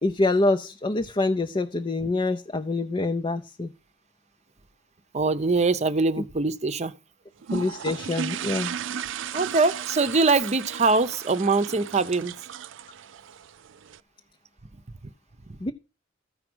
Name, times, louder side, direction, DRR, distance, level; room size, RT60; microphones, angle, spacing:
voice 1, 0.0-3.7 7.5-8.8 15.6-15.7, left 2 dB, 25° left, 0.5 m, -25 dB
voice 2, 5.1-6.9 9.3-12.4 15.5-15.6, right 3 dB, 35° right, 0.7 m, -23 dB
sound 1, 7.4-14.0, right 8 dB, 70° right, 0.4 m, -35 dB
14.0 x 4.9 x 6.1 m
head